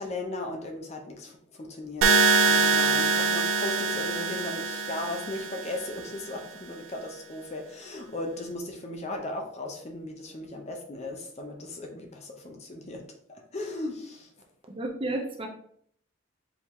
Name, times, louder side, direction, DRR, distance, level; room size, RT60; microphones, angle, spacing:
voice 1, 0.0-13.0 13.3-14.3, left 2 dB, 30° left, 3 dB, 0.6 m, -37 dB
sound 1, 2.0-6.0, right 4 dB, 75° right, 0.5 m, -24 dB
voice 2, 14.7-15.5, right 2 dB, 25° right, 2 dB, 0.6 m, -32 dB
4.7 x 2.7 x 3.6 m, 0.65 s
head